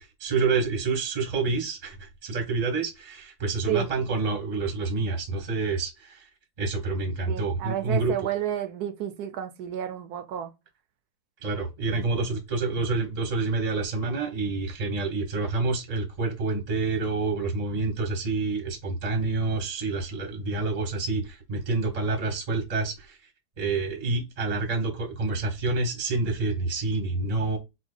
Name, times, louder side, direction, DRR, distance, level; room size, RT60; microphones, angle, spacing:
voice 1, 0.0-6.3 6.6-8.1 11.4-23.2 23.6-27.6, right 3 dB, 30° right, 0.6 m, -28 dB
voice 2, 7.3-10.5, right 11 dB, 75° right, 0.9 m, -31 dB
4.4 x 2.2 x 3.8 m
omnidirectional pair, 2.2 m